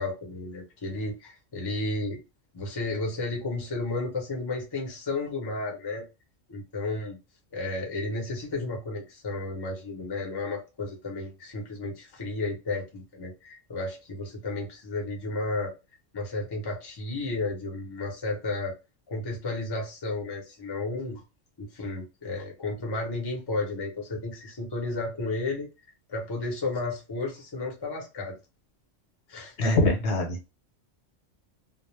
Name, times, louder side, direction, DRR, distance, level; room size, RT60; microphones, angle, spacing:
voice 1, 0.0-2.2 2.5-6.1 6.5-7.2 7.5-15.7 16.1-18.8 19.1-21.2 21.6-25.7 26.1-28.4 29.3-29.5, left 2 dB, 25° left, 0.6 m, -33 dB
voice 2, 29.6-30.5, left 1 dB, 65° left, 1.0 m, -24 dB
2.3 x 2.0 x 3.1 m
omnidirectional pair, 1.3 m